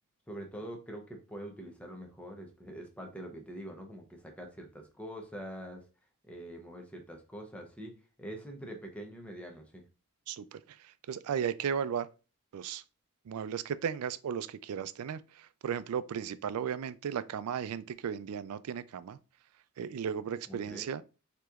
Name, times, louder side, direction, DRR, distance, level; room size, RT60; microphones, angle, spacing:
voice 1, 0.3-5.8 6.3-7.9 8.2-9.8 20.5-20.8, right 1 dB, 5° left, 0.7 m, -44 dB
voice 2, 10.3-12.1 12.5-12.8 13.3-19.2 19.8-21.0, right 7 dB, 85° right, 0.3 m, -35 dB
6.2 x 2.9 x 2.4 m
head